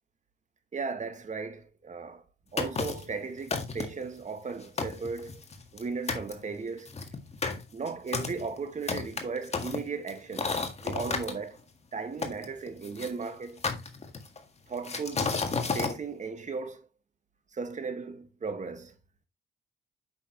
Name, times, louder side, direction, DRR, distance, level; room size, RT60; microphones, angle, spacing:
voice 1, 0.7-2.2 2.5-5.4 5.7-6.9 7.7-10.5 10.8-11.6 11.9-13.6 14.7-15.3 15.7-16.8 17.5-19.0, right 4 dB, 35° right, 1.7 m, -36 dB
sound 1, 2.6-3.1 3.5-4.0 4.5-4.6 4.8-5.8 6.1-6.3 6.8-11.3 12.2-13.1 13.6-14.4 14.8-15.9, left 4 dB, 35° left, 1.7 m, -32 dB
8.4 x 6.3 x 3.1 m
cardioid pair, 90°, 20 cm